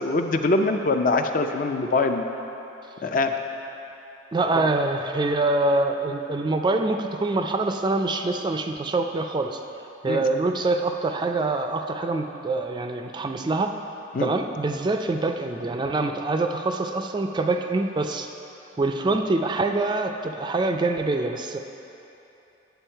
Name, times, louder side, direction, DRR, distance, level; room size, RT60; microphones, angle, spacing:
voice 1, 0.0-2.3 3.0-3.3 10.1-10.2 14.1-14.3, left 3 dB, 45° left, 6 dB, 0.5 m, -23 dB
voice 2, 4.3-9.6 10.0-13.7 14.2-18.3 18.8-21.6, right 2 dB, 25° right, 5 dB, 0.3 m, -25 dB
9.0 x 7.0 x 4.5 m, 2.9 s
head